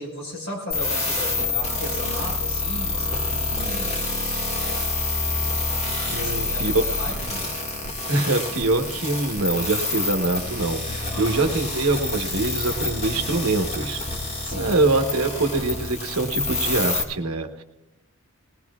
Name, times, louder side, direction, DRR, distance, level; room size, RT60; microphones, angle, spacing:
voice 1, 0.0-3.9 6.1-7.4 11.1-11.4 14.4-14.8, equal, 60° left, -1 dB, 4.9 m, -36 dB
sound 1, 0.7-17.0, left 3 dB, 30° left, 1.9 m, -27 dB
voice 2, 6.1-6.8 7.2-7.3 8.1-17.6, right 2 dB, 90° right, 5 dB, 1.1 m, -24 dB
19.5 x 17.5 x 2.4 m, 0.89 s
head